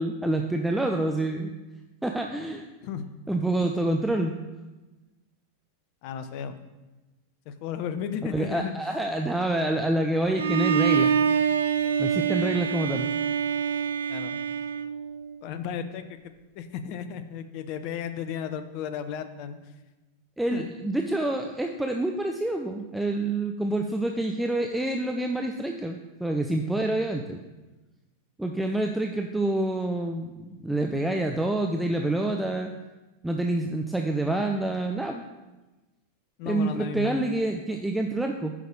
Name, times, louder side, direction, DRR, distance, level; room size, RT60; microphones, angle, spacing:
voice 1, 0.0-1.5 2.0-2.6 3.3-4.4 8.3-11.1 12.0-13.1 20.4-27.4 28.4-32.7 33.2-35.2 36.5-38.5, right 2 dB, 5° right, 3 dB, 0.5 m, -27 dB
voice 2, 6.0-6.6 7.5-8.7 14.1-14.4 15.4-19.6 20.5-20.7 36.4-37.2, left 8 dB, 45° left, 10 dB, 0.7 m, -34 dB
Bowed string instrument, 10.4-15.4, right 7 dB, 65° right, 0.4 m, -25 dB
9.6 x 5.5 x 3.7 m, 1.1 s
figure-of-eight pair, 90°, 0 cm